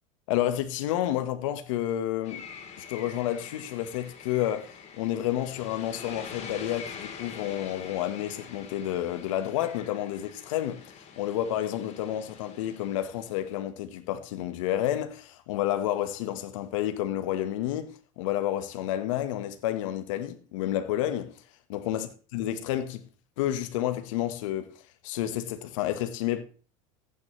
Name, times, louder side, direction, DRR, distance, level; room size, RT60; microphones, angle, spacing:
voice 1, 0.3-2.5 2.8-10.8 11.2-21.3 21.7-22.1 22.3-23.0 23.4-24.7 25.0-26.4, left 12 dB, 80° left, 1.5 m, -30 dB
sound 1, 2.2-13.6, left 6 dB, 40° left, 3.8 m, -45 dB
15.5 x 9.7 x 3.3 m
supercardioid pair, 110°, 16 cm